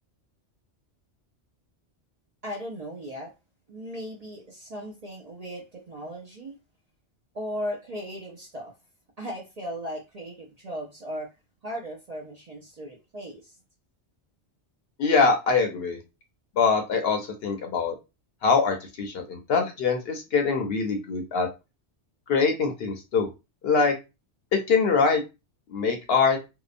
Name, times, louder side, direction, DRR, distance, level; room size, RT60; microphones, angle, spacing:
voice 1, 2.4-3.3 3.7-6.6 7.3-8.7 9.2-11.3 11.6-13.6, equal, 45° right, 0.5 m, -37 dB
voice 2, 15.0-16.0 16.6-17.9 18.4-21.5 22.3-23.3 23.6-23.9 24.5-25.2 25.7-26.4, left 5 dB, 65° left, 0.8 m, -23 dB
2.7 x 2.0 x 2.4 m
omnidirectional pair, 1.2 m